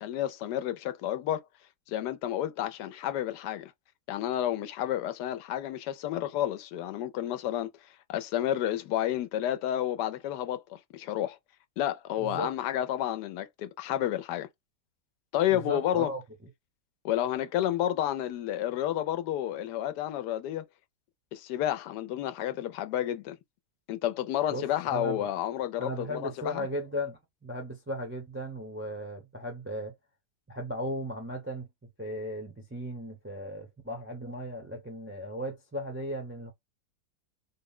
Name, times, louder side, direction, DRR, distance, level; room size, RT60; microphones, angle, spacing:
voice 1, 0.0-1.4 1.9-3.7 4.1-7.7 8.1-11.4 11.8-14.5 15.3-16.1 17.0-20.6 21.3-23.4 23.9-26.7, left 12 dB, 85° left, 1.2 m, -30 dB
voice 2, 12.2-12.5 15.5-16.2 24.5-24.6 24.9-25.3 25.8-29.9 30.5-31.7 32.0-36.5, equal, 15° right, 0.5 m, -36 dB
3.7 x 2.1 x 3.6 m
omnidirectional pair, 1.7 m